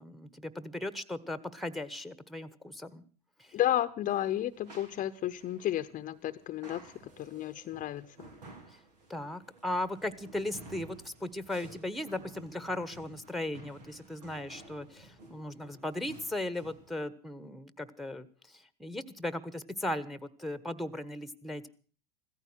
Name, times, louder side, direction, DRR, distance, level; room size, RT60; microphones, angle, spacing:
voice 1, 0.0-3.0 3.4-3.5 9.1-21.7, left 1 dB, ahead, 15 dB, 1.2 m, -37 dB
voice 2, 3.5-8.1, left 12 dB, 40° left, 11 dB, 0.8 m, -32 dB
sound 1, 4.0-16.9, right 2 dB, 90° right, 3.5 m, -54 dB
16.0 x 14.5 x 6.2 m, 0.41 s
hypercardioid pair, 95°, 20 cm